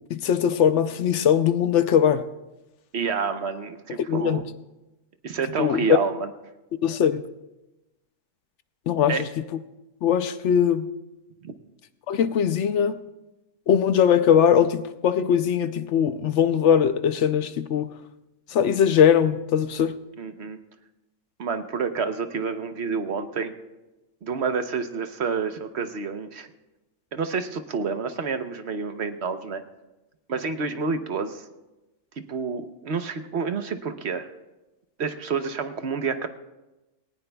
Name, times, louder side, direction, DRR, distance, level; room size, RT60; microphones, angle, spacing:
voice 1, 0.1-2.3 4.0-4.4 5.6-6.0 6.8-7.2 8.9-9.2 10.0-10.9 12.1-13.0 13.7-17.9 18.5-20.0, left 8 dB, 70° left, 0.9 m, -20 dB
voice 2, 2.9-4.4 5.2-6.3 9.1-9.3 11.4-11.5 20.2-20.6 21.4-23.5 24.2-26.5 27.1-29.6 30.3-31.4 32.2-34.3 35.0-36.3, right 5 dB, 60° right, 1.0 m, -29 dB
19.0 x 18.5 x 2.3 m
omnidirectional pair, 1.3 m